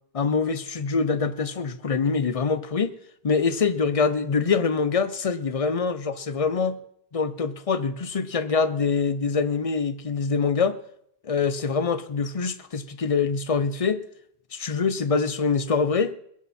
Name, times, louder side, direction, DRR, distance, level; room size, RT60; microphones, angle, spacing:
voice 1, 0.1-2.9 3.2-6.8 7.1-10.8 11.2-14.0 14.5-16.1, left 5 dB, 40° left, 0.7 m, -24 dB
21.0 x 11.0 x 4.3 m
omnidirectional pair, 1.1 m